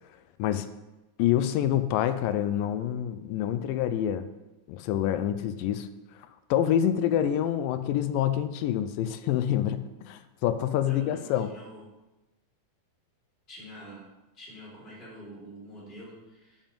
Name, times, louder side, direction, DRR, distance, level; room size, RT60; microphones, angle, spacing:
voice 1, 1.2-4.3 4.7-5.9 6.5-11.5, left 10 dB, 80° left, 11 dB, 2.1 m, -27 dB
voice 2, 10.8-11.8 13.5-14.1 14.3-16.6, equal, 15° left, -8 dB, 3.6 m, -46 dB
7.3 x 7.2 x 5.2 m, 1.0 s
omnidirectional pair, 4.1 m